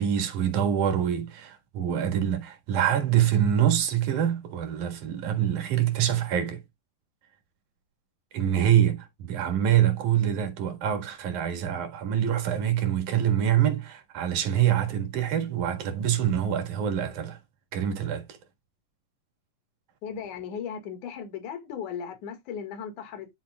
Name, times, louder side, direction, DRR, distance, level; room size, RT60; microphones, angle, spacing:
voice 1, 0.0-6.6 8.3-17.4 17.7-18.2, right 10 dB, 65° right, 3.0 m, -25 dB
voice 2, 20.0-23.3, left 7 dB, 65° left, 3.2 m, -36 dB
10.5 x 7.2 x 2.3 m
omnidirectional pair, 4.0 m